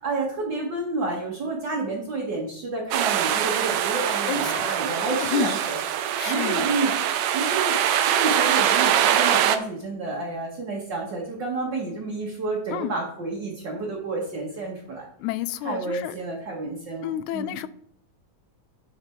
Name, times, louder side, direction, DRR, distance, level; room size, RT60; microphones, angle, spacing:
voice 1, 0.0-5.8 6.2-6.9 7.3-15.1 15.6-17.5, right 3 dB, 45° right, 1.8 m, -30 dB
sound 1, 2.9-9.6, right 10 dB, 85° right, 1.3 m, -23 dB
voice 2, 4.3-4.7 5.1-5.5 6.2-6.7 12.7-12.9 15.2-16.2 17.0-17.7, left 10 dB, 80° left, 1.9 m, -30 dB
sound 2, 4.8-7.4, right 7 dB, 70° right, 2.0 m, -41 dB
11.5 x 5.2 x 4.6 m
omnidirectional pair, 3.5 m